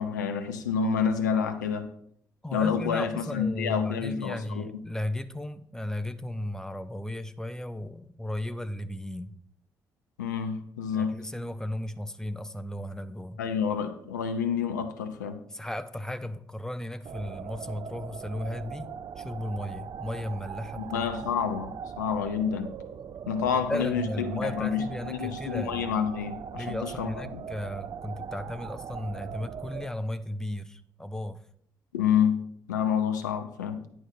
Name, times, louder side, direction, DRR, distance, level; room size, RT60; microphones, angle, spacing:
voice 1, 0.0-1.9 2.5-4.7 10.2-11.1 13.4-15.4 20.9-22.7 23.3-27.4 31.9-32.4 32.7-33.8, left 7 dB, 85° left, 8 dB, 0.7 m, -28 dB
voice 2, 2.4-9.3 10.9-13.4 15.5-21.1 23.5-26.1 26.6-31.4, left 1 dB, 5° left, 12 dB, 0.8 m, -35 dB
sound 1, 17.1-29.9, right 7 dB, 50° right, 0.5 m, -40 dB
9.6 x 5.1 x 5.9 m, 0.67 s
figure-of-eight pair, 40°, 9 cm